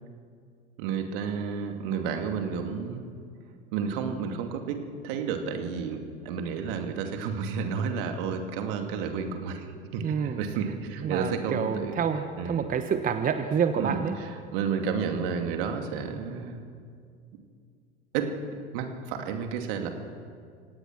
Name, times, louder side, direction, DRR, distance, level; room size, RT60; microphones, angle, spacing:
voice 1, 0.8-3.0 3.7-9.7 9.9-11.9 12.4-12.6 13.8-16.6 18.1-18.3 18.7-19.9, right 6 dB, 60° right, 5 dB, 2.5 m, -31 dB
voice 2, 10.0-10.4 11.0-14.1, right 7 dB, 25° right, 8 dB, 1.1 m, -28 dB
26.5 x 17.5 x 6.1 m, 2.2 s
figure-of-eight pair, 80°, 31 cm